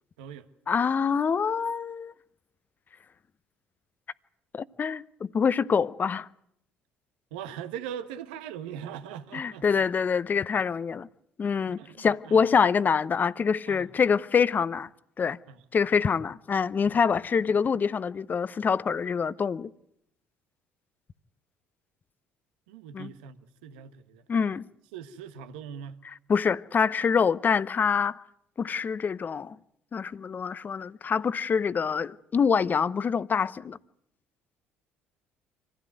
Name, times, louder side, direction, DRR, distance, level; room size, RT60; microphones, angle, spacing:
voice 1, 0.7-2.1 4.5-5.0 5.3-6.3 9.3-11.1 11.4-14.9 15.2-15.4 15.7-19.7 22.9-23.1 24.3-24.7 26.3-28.2 28.6-29.6 29.9-33.8, left 6 dB, 40° left, 0.9 m, -25 dB
voice 2, 7.3-9.8 11.8-12.5 13.7-13.9 15.5-15.6 22.7-24.2 24.9-26.0, right 8 dB, 85° right, 1.4 m, -41 dB
25.0 x 16.0 x 9.4 m
hypercardioid pair, 65°, 5 cm